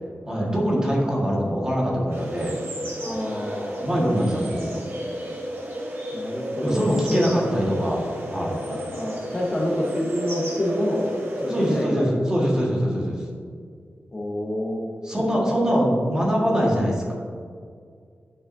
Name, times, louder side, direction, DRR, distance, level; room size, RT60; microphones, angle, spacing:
voice 1, 0.3-2.6 3.8-4.9 6.6-8.0 8.3-8.6 11.5-13.2 15.0-17.1, equal, 15° right, -4 dB, 1.5 m, -23 dB
sound 1, 2.1-11.9, equal, 80° right, 1.6 m, -33 dB
voice 2, 3.0-3.9 6.1-6.8 7.1-7.3 8.7-11.0 11.4-12.1 14.1-14.8, left 1 dB, 25° left, -3 dB, 0.9 m, -27 dB
9.8 x 6.1 x 2.6 m, 2.1 s
wide cardioid pair, 155°, 4 cm